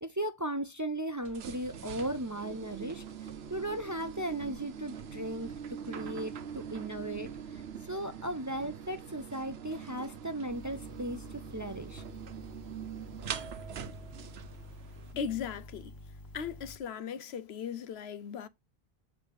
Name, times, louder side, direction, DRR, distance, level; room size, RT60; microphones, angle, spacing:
voice 1, 0.0-3.0 3.5-5.5 5.8-12.0, right 1 dB, 25° right, 0.5 m, -36 dB
sound 1, 1.2-15.1, right 7 dB, 80° right, 1.1 m, -43 dB
sound 2, 10.5-16.8, left 1 dB, 20° left, 0.8 m, -49 dB
voice 2, 15.1-16.0 16.3-18.5, left 7 dB, 85° left, 1.0 m, -37 dB
7.1 x 4.4 x 5.3 m
omnidirectional pair, 1.1 m